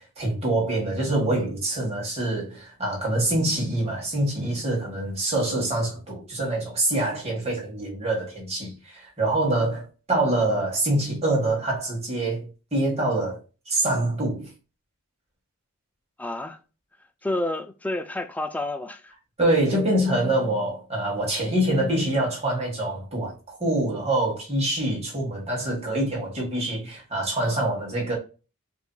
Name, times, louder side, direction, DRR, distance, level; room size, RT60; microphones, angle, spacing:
voice 1, 0.2-13.4 13.7-14.5 19.4-28.1, right 1 dB, 30° right, 1.6 m, -25 dB
voice 2, 16.2-16.6 17.2-19.1, left 2 dB, 5° left, 0.3 m, -29 dB
4.6 x 2.8 x 2.2 m
head